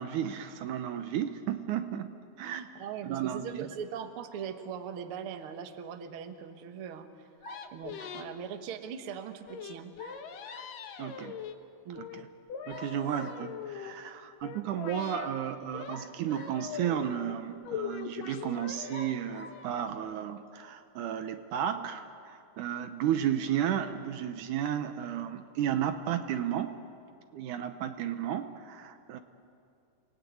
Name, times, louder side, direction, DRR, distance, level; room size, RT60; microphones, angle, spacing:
voice 1, 0.0-2.1 2.4-2.6 3.0-3.7 11.0-11.4 12.2-12.3 12.7-26.8 27.3-29.2, right 10 dB, 75° right, 9 dB, 2.3 m, -33 dB
voice 2, 2.4-7.3 7.7-9.9 11.9-12.0, right 7 dB, 55° right, 7 dB, 1.7 m, -40 dB
sound 1, 7.4-8.3 10.0-10.8 12.7-13.5 15.9-16.7 17.5-17.6 18.9-19.6, left 1 dB, 55° left, 0.8 m, -48 dB
sound 2, 7.5-8.2 9.5-11.5 12.0-12.2 12.5-13.9 14.4-15.3 15.7-16.0 16.3-17.4 17.6-19.1 19.4-19.9, left 7 dB, 80° left, 3.0 m, -41 dB
30.0 x 19.5 x 9.4 m, 2.5 s
omnidirectional pair, 3.8 m